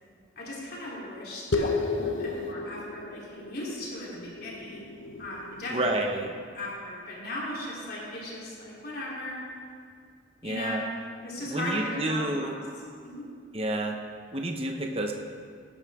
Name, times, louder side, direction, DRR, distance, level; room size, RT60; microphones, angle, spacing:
voice 1, 0.4-4.9 5.2-5.9 6.5-9.4 10.4-12.6 13.0-13.3, left 1 dB, 55° left, -6 dB, 3.5 m, -37 dB
sound 1, 1.5-6.3, left 3 dB, 80° left, 0.9 m, -33 dB
voice 2, 5.7-6.3 10.4-10.8 11.5-12.6 13.5-14.0 14.3-15.1, right 1 dB, 30° right, 3 dB, 0.9 m, -29 dB
18.5 x 11.5 x 3.7 m, 2.1 s
head